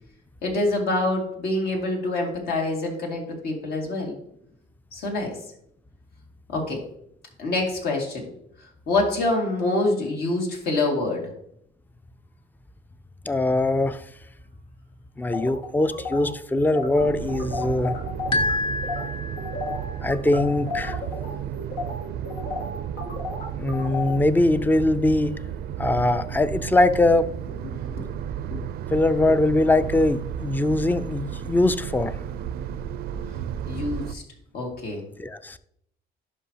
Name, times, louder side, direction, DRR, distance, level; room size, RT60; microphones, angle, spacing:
voice 1, 0.4-4.2 4.9-5.4 6.5-6.8 7.4-8.3 8.9-11.2 27.7-28.1 28.5-28.6 33.7-34.2 34.5-35.0, left 2 dB, 65° left, 0 dB, 2.2 m, -26 dB
voice 2, 13.3-14.1 15.2-18.0 20.0-21.0 23.6-25.4 25.8-27.3 28.9-32.2 35.2-35.6, left 2 dB, 10° left, 13 dB, 0.4 m, -22 dB
sound 1, 15.3-18.5 18.8-19.1 19.4-24.2, left 3 dB, 85° left, 1.9 m, -33 dB
sound 2, 17.0-34.1, right 9 dB, 65° right, 0.4 m, -33 dB
sound 3, 18.3-19.9, left 2 dB, 30° left, 0.8 m, -27 dB
11.0 x 5.3 x 2.9 m, 0.73 s
cardioid pair, 110°, 17 cm